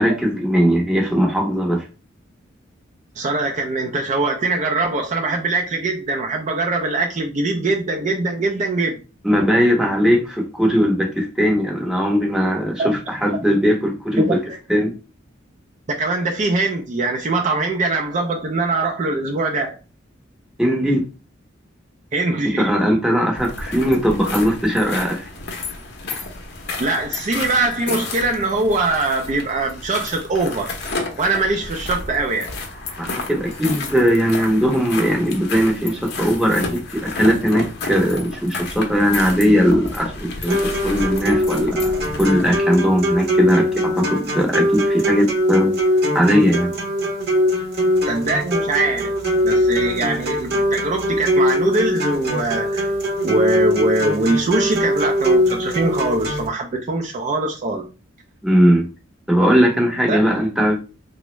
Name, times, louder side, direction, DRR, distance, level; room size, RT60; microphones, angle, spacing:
voice 1, 0.0-1.9 9.2-14.4 14.7-14.9 20.6-21.0 22.4-25.3 33.0-36.6 36.9-45.7 46.1-46.7 58.4-58.8 59.3-60.8, equal, 5° right, 0.7 m, -19 dB
voice 2, 3.2-9.0 12.8-12.9 14.2-14.3 15.9-19.8 22.1-22.7 26.8-30.7 31.2-32.5 48.0-49.1 49.4-52.9 53.2-57.8 60.1-60.2, right 2 dB, 35° right, 0.4 m, -22 dB
sound 1, 23.4-42.6, left 3 dB, 55° left, 0.6 m, -31 dB
sound 2, 40.5-56.5, equal, 55° right, 0.7 m, -21 dB
3.4 x 2.0 x 3.0 m
head